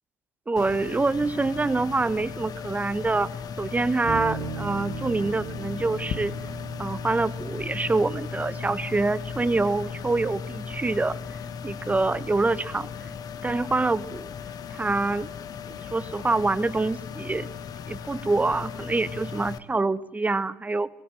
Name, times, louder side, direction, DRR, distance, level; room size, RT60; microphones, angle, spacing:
voice 1, 0.5-3.3 3.6-6.3 6.8-11.2 11.6-12.9 13.4-14.3 14.7-15.3 15.7-17.5 17.9-20.9, right 3 dB, 15° right, 16 dB, 1.5 m, -26 dB
sound 1, 0.6-19.6, left 6 dB, 45° left, 1.7 m, -36 dB
sound 2, 4.1-13.5, right 6 dB, 65° right, 5.4 m, -41 dB
23.5 x 21.5 x 9.3 m, 0.78 s
figure-of-eight pair, 55°, 9 cm